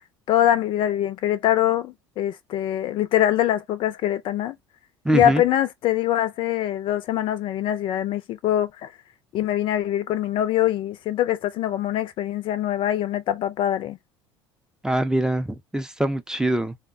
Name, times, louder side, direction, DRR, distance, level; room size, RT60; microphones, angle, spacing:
voice 1, 0.3-4.6 5.1-8.9 9.3-14.0, left 12 dB, 45° left, 0.5 m, -23 dB
voice 2, 5.0-5.4 14.8-16.8, right 1 dB, 5° right, 0.5 m, -23 dB
3.7 x 2.2 x 3.5 m
figure-of-eight pair, 65°, 12 cm